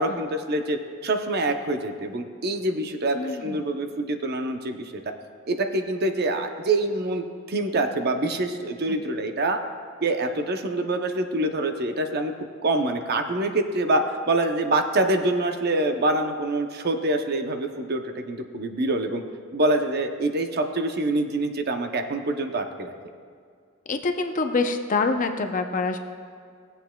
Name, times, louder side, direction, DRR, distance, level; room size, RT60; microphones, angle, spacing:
voice 1, 0.0-3.2 3.4-5.0 5.5-9.6 10.0-12.3 12.6-19.2 19.5-22.9, right 2 dB, 50° right, 6 dB, 0.6 m, -25 dB
voice 2, 3.1-3.6 8.9-9.0 23.9-26.0, left 3 dB, 40° left, 6 dB, 0.6 m, -26 dB
17.5 x 8.0 x 2.2 m, 2.1 s
head